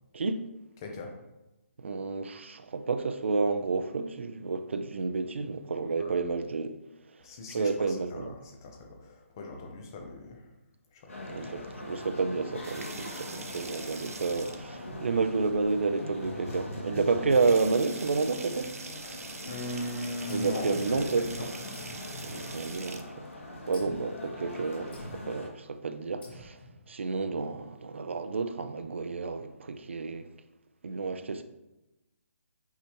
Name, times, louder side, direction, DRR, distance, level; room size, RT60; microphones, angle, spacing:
voice 1, 0.1-0.5 1.8-6.7 7.5-8.3 11.3-18.7 20.3-21.3 22.2-23.3 23.7-26.6 26.9-30.3 30.8-31.4, right 4 dB, 55° right, 0.6 m, -30 dB
voice 2, 0.8-1.1 6.0-6.3 7.2-10.5 10.9-11.5 19.4-21.5, left 2 dB, 15° left, 0.6 m, -39 dB
sound 1, 11.1-25.5, left 2 dB, 70° left, 2.2 m, -42 dB
sound 2, 12.5-14.9 16.2-16.3 16.7-16.8 17.2-23.1 24.7-25.3, right 3 dB, 85° right, 1.0 m, -44 dB
sound 3, 20.3-21.3 21.7-23.0 23.7-24.2 24.9-25.5 26.2-26.8, left 1 dB, 45° left, 1.9 m, -48 dB
8.3 x 4.8 x 3.0 m
hypercardioid pair, 180°, 8 cm